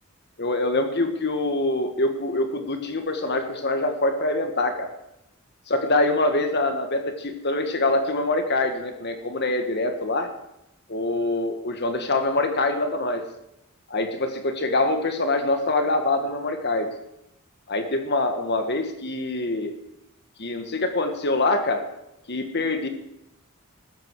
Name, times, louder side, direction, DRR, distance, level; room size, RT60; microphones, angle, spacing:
voice 1, 0.4-4.9 5.7-10.3 10.9-13.2 13.9-16.9 17.7-19.7 20.4-21.8 22.3-22.9, left 2 dB, 50° left, 6 dB, 1.6 m, -24 dB
15.5 x 13.5 x 4.8 m, 0.84 s
head